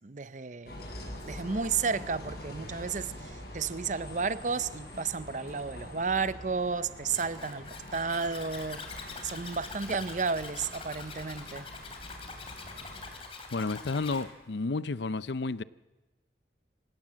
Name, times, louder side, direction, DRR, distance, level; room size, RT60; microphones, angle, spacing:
voice 1, 0.0-0.8 1.3-8.8 9.2-11.7, right 5 dB, 45° right, 0.6 m, -32 dB
Bus, 0.7-13.2, left 1 dB, 60° left, 7.4 m, -45 dB
Zipper (clothing), 7.1-14.3, left 4 dB, 30° left, 3.0 m, -44 dB
voice 2, 13.5-15.6, left 3 dB, 75° left, 0.6 m, -31 dB
26.0 x 17.0 x 7.5 m
head